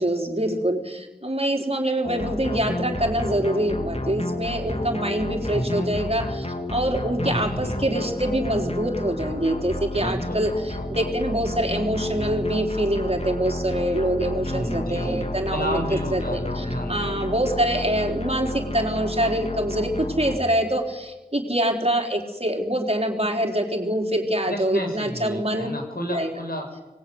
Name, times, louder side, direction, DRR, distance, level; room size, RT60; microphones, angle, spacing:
voice 1, 0.0-15.8 16.1-25.7 26.1-26.3, right 1 dB, 35° right, 2 dB, 4.2 m, -25 dB
sound 1, 2.0-20.4, left 1 dB, 40° left, 2.4 m, -31 dB
voice 2, 5.5-6.0 7.2-8.1 9.9-10.5 14.4-17.2 24.5-26.7, equal, 65° left, 3 dB, 6.4 m, -31 dB
25.0 x 20.0 x 9.7 m, 1.1 s
wide cardioid pair, 45°, 17 cm